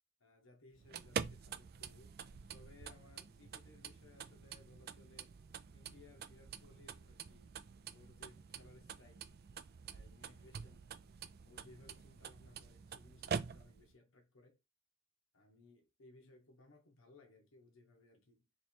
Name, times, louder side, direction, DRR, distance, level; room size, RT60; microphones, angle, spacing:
voice 1, 0.2-2.2 2.5-5.4 5.7-7.6 7.9-9.3 9.9-10.9 11.4-14.6 15.3-18.5, left 2 dB, 75° left, 1.0 m, -63 dB
sound 1, 0.7-13.9, right 6 dB, 50° right, 0.4 m, -47 dB
3.2 x 3.1 x 4.3 m
head